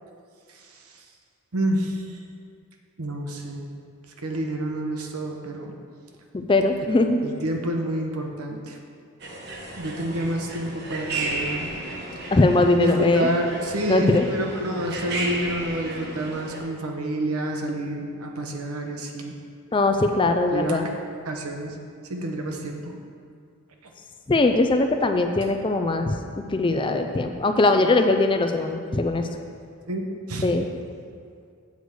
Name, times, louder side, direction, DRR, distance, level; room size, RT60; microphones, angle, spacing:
voice 1, 1.5-2.2 3.0-3.7 4.2-5.7 7.2-8.8 9.7-11.7 12.8-19.3 20.5-20.8 21.2-21.8 22.1-22.9 29.9-30.5, right 1 dB, 85° right, 2 dB, 1.0 m, -28 dB
voice 2, 6.3-7.2 12.3-13.3 13.9-14.3 19.7-20.9 24.3-26.2 26.5-29.3 30.4-30.7, left 2 dB, 20° left, 5 dB, 0.4 m, -21 dB
sound 1, 9.2-16.6, right 2 dB, 50° right, 1.1 m, -33 dB
8.0 x 4.7 x 6.7 m, 2.2 s
head